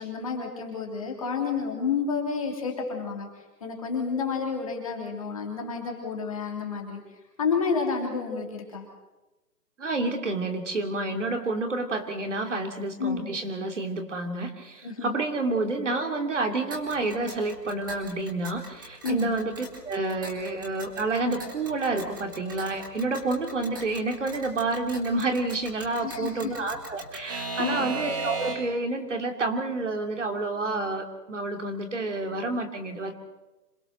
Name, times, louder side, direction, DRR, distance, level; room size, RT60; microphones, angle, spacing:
voice 1, 0.0-3.3 3.6-7.0 7.4-8.8 13.0-13.3 14.8-15.2 19.0-19.3 26.0-26.5 27.6-27.9, left 5 dB, 20° left, 1 dB, 2.9 m, -30 dB
voice 2, 9.8-33.1, right 2 dB, 45° right, 5 dB, 2.8 m, -29 dB
Alarm / Clock, 16.7-28.9, right 3 dB, 15° right, 1.7 m, -39 dB
26.5 x 20.5 x 6.5 m, 1.1 s
hypercardioid pair, 180°, 48 cm